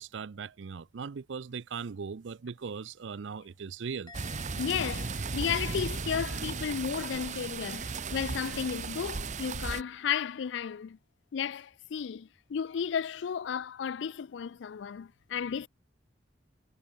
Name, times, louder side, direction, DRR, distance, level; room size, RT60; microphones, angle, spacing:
voice 1, 0.0-4.1, right 5 dB, 80° right, 0.5 m, -39 dB
Musical instrument, 4.1-7.5 7.7-8.2, left 4 dB, 25° left, 1.3 m, -55 dB
sound 1, 4.1-9.8, right 4 dB, 40° right, 0.7 m, -36 dB
voice 2, 4.6-11.0 11.3-15.7, left 7 dB, 80° left, 0.4 m, -33 dB
head